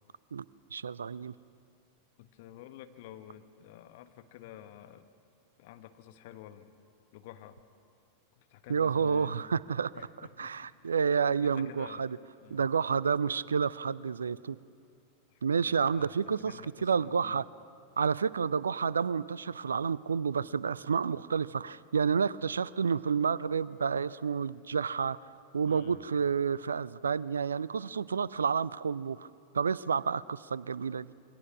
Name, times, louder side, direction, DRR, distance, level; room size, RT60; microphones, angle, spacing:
voice 1, 0.7-1.3 8.7-9.9 10.4-12.2 12.5-14.6 15.4-17.5 18.0-25.2 25.5-29.3 29.5-31.1, right 6 dB, 70° right, 21 dB, 0.5 m, -30 dB
voice 2, 2.2-5.1 5.6-6.7 7.1-7.6 8.5-9.4 9.9-10.9 11.4-12.0 12.4-12.7 15.3-17.4 25.6-26.0, left 12 dB, 50° left, 8 dB, 1.5 m, -50 dB
27.5 x 23.0 x 6.0 m, 2.6 s
figure-of-eight pair, 90°, 0 cm